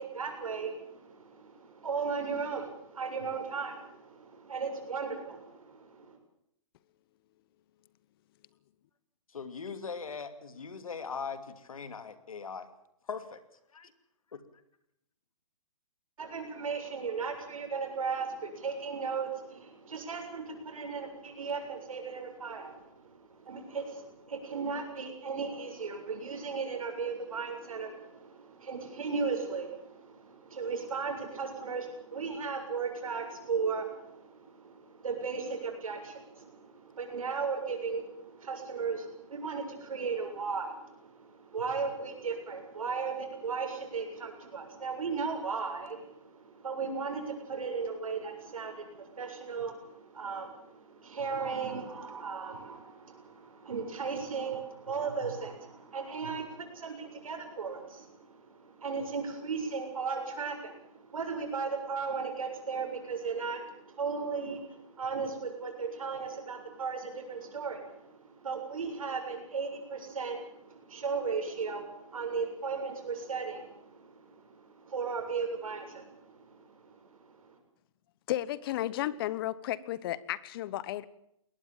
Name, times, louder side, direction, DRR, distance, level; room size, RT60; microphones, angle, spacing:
voice 1, 0.0-6.2 16.2-77.6, right 5 dB, 85° right, 4 dB, 7.3 m, -36 dB
voice 2, 9.3-12.7 13.1-13.4 13.7-13.9 14.3-14.4, left 5 dB, 90° left, 11 dB, 2.7 m, -40 dB
voice 3, 78.3-81.0, left 14 dB, 45° left, 19 dB, 1.1 m, -33 dB
22.0 x 19.0 x 7.5 m, 0.76 s
hypercardioid pair, 145°, 17 cm